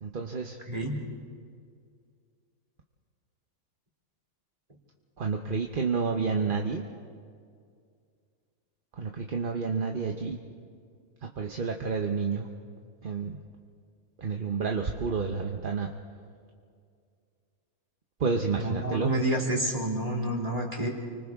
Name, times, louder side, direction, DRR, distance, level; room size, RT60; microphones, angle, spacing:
voice 1, 0.0-0.6 5.2-6.8 8.9-10.4 11.2-12.5 13.0-13.4 14.2-15.9 18.2-19.1, right 5 dB, 40° right, 2 dB, 1.0 m, -30 dB
voice 2, 0.7-1.0 18.6-20.9, right 1 dB, 25° right, -2 dB, 3.1 m, -29 dB
29.5 x 24.5 x 3.6 m, 2.2 s
omnidirectional pair, 1.6 m